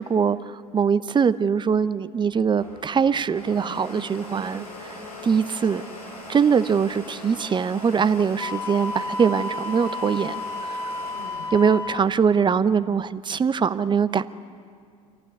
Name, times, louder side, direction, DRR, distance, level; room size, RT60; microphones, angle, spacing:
voice 1, 0.0-4.9 5.2-5.8 6.3-11.0 11.5-14.2, right 6 dB, 25° right, 14 dB, 0.9 m, -22 dB
Domestic sounds home sounds, 2.2-12.9, left 1 dB, 85° left, 6.2 m, -41 dB
Wind instrument woodwind instrument, 8.4-12.1, left 2 dB, 15° left, 2.0 m, -32 dB
27.0 x 15.0 x 9.6 m, 2.2 s
figure-of-eight pair, 65°, 19 cm